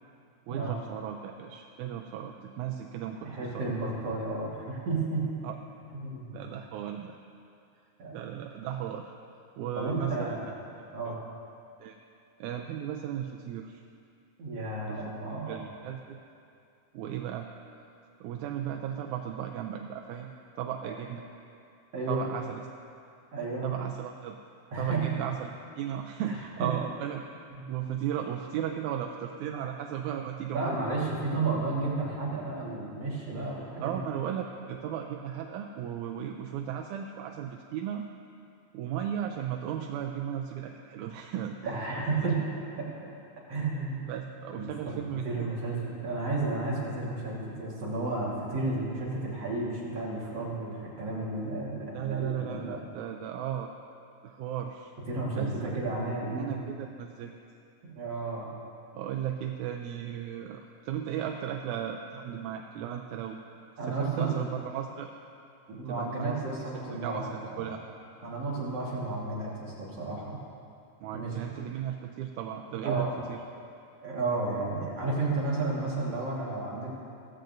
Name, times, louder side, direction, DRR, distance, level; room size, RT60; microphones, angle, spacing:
voice 1, 0.5-3.8 5.4-5.6 6.3-7.2 8.1-9.1 9.6-10.4 11.1-11.2 11.8-12.0 12.4-13.8 14.9-15.0 15.3-16.2 16.9-17.5 18.2-21.2 22.1-22.6 23.6-24.4 24.8-27.2 27.7-30.8 33.8-38.1 38.7-41.6 41.9-42.3 44.1-45.5 51.9-53.7 54.2-54.9 55.4-55.8 56.4-57.3 58.9-63.5 63.9-65.1 65.9-66.4 66.9-67.3 67.6-67.8 71.0-73.4, right 9 dB, 85° right, 3 dB, 2.0 m, -35 dB
voice 2, 3.2-5.3 6.0-6.4 8.0-8.1 9.8-10.4 10.9-11.2 14.4-15.6 20.8-21.0 21.9-22.2 23.3-23.7 24.7-25.1 26.2-26.3 26.6-26.7 27.6-27.7 30.5-34.0 41.6-42.4 42.7-43.1 43.5-44.0 44.5-52.8 55.1-56.6 58.0-58.5 63.8-64.5 65.8-67.2 67.5-67.7 68.2-70.4 71.1-71.5 72.8-73.2 74.0-77.0, right 3 dB, 60° right, -5 dB, 2.5 m, -32 dB
16.0 x 14.5 x 2.6 m, 2.5 s
omnidirectional pair, 3.4 m